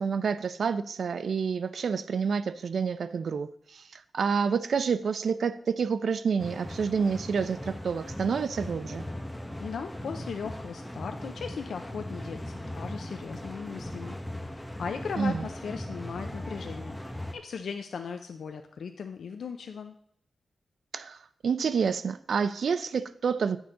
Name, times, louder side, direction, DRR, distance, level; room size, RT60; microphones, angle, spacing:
voice 1, 0.0-9.0 15.2-15.4 20.9-23.6, right 6 dB, 70° right, 0.4 m, -28 dB
Wind instrument woodwind instrument, 5.2-13.3, right 1 dB, 30° right, 2.9 m, -58 dB
sound 1, 6.4-17.3, left 1 dB, 5° left, 0.7 m, -39 dB
voice 2, 9.6-17.0 17.3-19.9, left 6 dB, 80° left, 0.5 m, -38 dB
9.3 x 6.3 x 3.7 m
wide cardioid pair, 135°, 0 cm